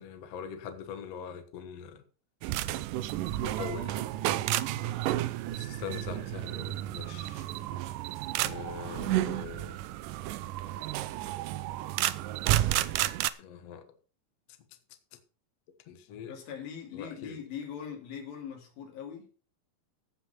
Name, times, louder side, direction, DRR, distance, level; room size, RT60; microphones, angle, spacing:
voice 1, 0.0-2.0 3.4-4.0 5.5-7.4 8.4-9.8 13.4-13.8 15.9-16.3 16.9-17.4, left 7 dB, 55° left, 2.0 m, -42 dB
sound 1, 2.4-13.3, right 14 dB, 75° right, 2.1 m, -31 dB
voice 2, 16.3-19.3, left 8 dB, 80° left, 4.4 m, -41 dB
15.5 x 5.7 x 5.6 m
omnidirectional pair, 4.1 m